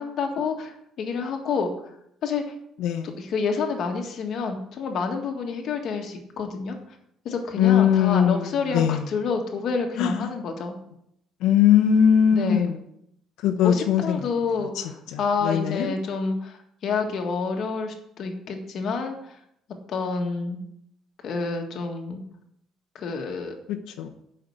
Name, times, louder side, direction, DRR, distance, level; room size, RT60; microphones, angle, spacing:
voice 1, 0.0-1.7 2.2-2.5 3.0-6.8 7.2-10.7 12.3-12.7 13.6-19.4 19.9-20.6 21.2-22.2 22.9-23.5, left 4 dB, 45° left, 3 dB, 1.7 m, -28 dB
voice 2, 7.6-9.0 10.0-10.1 11.4-12.8 13.4-14.2 15.1-15.2 15.4-15.9 24.0-24.1, left 9 dB, 90° left, 2 dB, 1.0 m, -20 dB
8.8 x 5.8 x 8.1 m, 0.74 s
cardioid pair, 170°, 0 cm